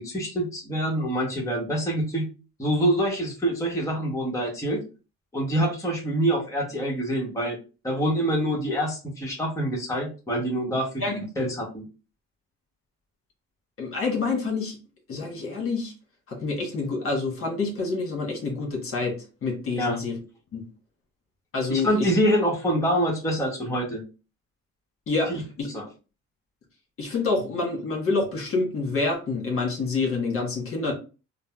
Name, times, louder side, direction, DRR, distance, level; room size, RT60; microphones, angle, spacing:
voice 1, 0.0-2.3 2.6-4.8 5.3-7.6 7.8-11.8 19.8-20.0 21.7-24.0 25.7-25.8, equal, 10° left, -2 dB, 1.0 m, -26 dB
voice 2, 13.8-14.8 15.1-15.9 16.3-20.2 20.5-20.6 21.5-22.1 25.1-25.7 27.0-30.9, left 3 dB, 45° left, 1 dB, 1.3 m, -27 dB
3.8 x 2.0 x 2.3 m, 0.32 s
cardioid pair, 90°, 30 cm